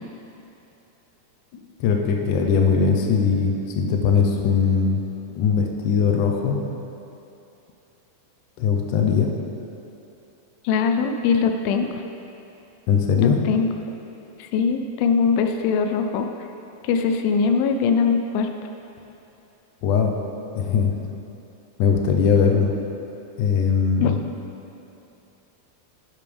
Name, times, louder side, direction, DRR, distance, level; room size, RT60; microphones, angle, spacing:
voice 1, 1.8-5.0 5.4-6.6 8.6-9.3 12.9-13.4 19.8-20.1 20.5-20.9 21.8-22.7 23.4-24.2, left 6 dB, 70° left, 2 dB, 2.1 m, -20 dB
voice 2, 10.6-11.9 13.2-13.7 14.4-16.3 16.8-18.5 24.0-24.1, left 5 dB, 90° left, 5 dB, 2.4 m, -21 dB
11.0 x 10.5 x 3.4 m, 2.9 s
omnidirectional pair, 4.2 m